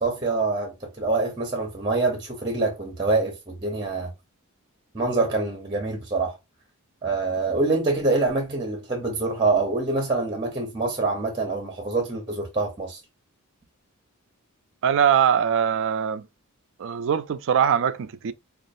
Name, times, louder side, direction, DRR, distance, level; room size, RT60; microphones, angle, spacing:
voice 1, 0.0-4.1 4.9-6.4 7.0-13.0, right 3 dB, 20° right, 0.8 m, -25 dB
voice 2, 14.8-16.2 16.8-18.3, right 8 dB, 60° right, 0.3 m, -22 dB
5.1 x 2.4 x 2.5 m
head